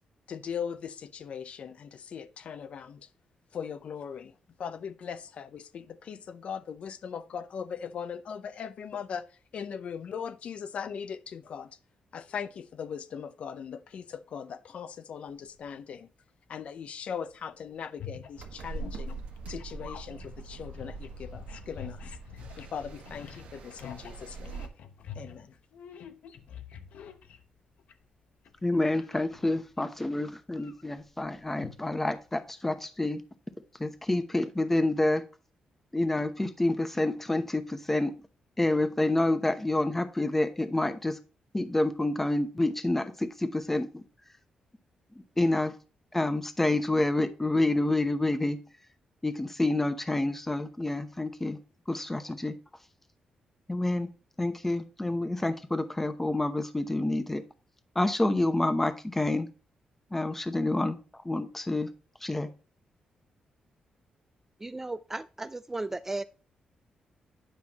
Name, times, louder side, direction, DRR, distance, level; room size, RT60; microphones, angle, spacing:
voice 1, 0.3-3.1 3.5-11.8 12.1-16.1 16.5-19.2 19.5-22.0 22.6-24.6 25.1-25.6, left 7 dB, 60° left, 0.6 m, -39 dB
sound 1, 15.3-15.7 17.2-17.3 17.6-28.1 28.4-29.8 30.3-32.3, left 8 dB, 85° left, 0.9 m, -47 dB
sound 2, 18.4-24.7, right 3 dB, 80° right, 1.4 m, -42 dB
voice 2, 28.6-33.2 33.8-35.2 35.9-38.1 38.6-41.2 41.5-44.0 45.2-45.7 46.1-48.6 49.2-51.6 51.9-52.5 53.7-54.1 54.4-57.4 57.9-59.5 60.1-61.9 62.2-62.5, left 2 dB, 10° left, 0.9 m, -28 dB
voice 3, 64.6-66.2, right 2 dB, 15° right, 0.3 m, -35 dB
9.7 x 5.6 x 3.0 m
cardioid pair, 125°, 2 cm